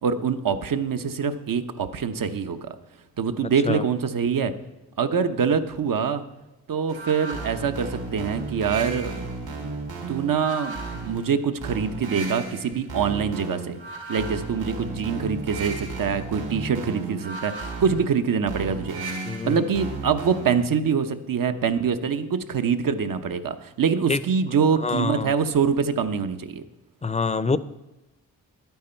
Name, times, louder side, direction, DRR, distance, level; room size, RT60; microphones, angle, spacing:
voice 1, 0.0-2.7 3.2-4.5 5.0-6.2 6.7-9.2 10.1-13.8 14.1-19.2 19.4-26.6, right 6 dB, 60° right, 8 dB, 1.0 m, -24 dB
sound 1, 6.9-20.7, right 3 dB, 80° right, 3.5 m, -34 dB
voice 2, 19.2-19.8 24.1-24.2 24.8-25.3 27.0-27.6, left 4 dB, 20° left, 16 dB, 0.6 m, -26 dB
11.5 x 9.3 x 4.5 m, 1.0 s
cardioid pair, 55°, 37 cm